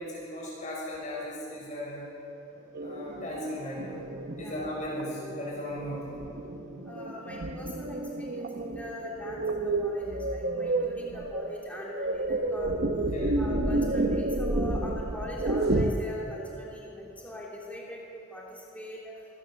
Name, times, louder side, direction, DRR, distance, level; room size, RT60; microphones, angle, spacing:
voice 1, 0.0-2.1 2.5-4.1 4.4-6.2 13.1-13.4, left 1 dB, 40° left, -5 dB, 6.6 m, -37 dB
sound 1, 2.7-15.9, right 2 dB, 50° right, 1.1 m, -31 dB
voice 2, 6.8-12.8 13.3-19.1, left 1 dB, 5° left, -4 dB, 3.3 m, -41 dB
26.0 x 18.5 x 7.1 m, 2.9 s
head